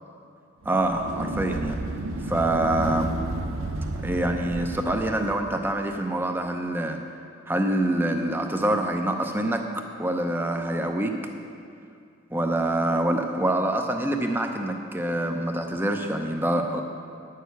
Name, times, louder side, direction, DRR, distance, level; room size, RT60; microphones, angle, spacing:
sound 1, 0.6-5.5, right 2 dB, 90° right, 0.7 m, -32 dB
voice 1, 0.7-1.8 2.3-3.1 4.0-7.0 7.5-11.2 12.3-16.8, right 1 dB, 10° right, 4 dB, 0.7 m, -25 dB
10.5 x 6.6 x 8.1 m, 2.4 s
head